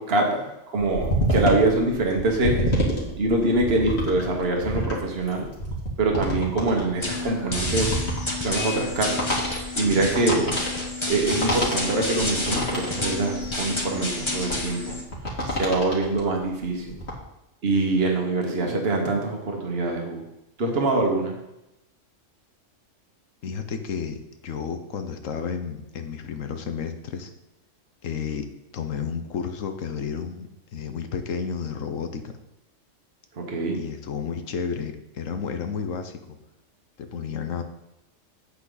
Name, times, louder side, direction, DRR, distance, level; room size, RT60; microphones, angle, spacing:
voice 1, 0.0-2.7 3.2-5.5 6.0-8.0 8.4-9.2 9.8-10.6 11.1-15.0 15.5-17.0 17.6-20.2 20.6-21.4 33.4-33.8, right 2 dB, 50° right, 1 dB, 1.6 m, -24 dB
sound 1, 0.8-16.2 16.6-17.1, equal, 55° left, 2.5 m, -28 dB
sound 2, 7.0-15.0, left 2 dB, 20° left, 1.3 m, -30 dB
voice 2, 23.4-27.3 28.0-28.5 28.7-32.3 33.7-36.4 37.0-37.6, left 6 dB, 80° left, 8 dB, 1.3 m, -32 dB
8.6 x 8.3 x 4.0 m, 0.90 s
omnidirectional pair, 1.3 m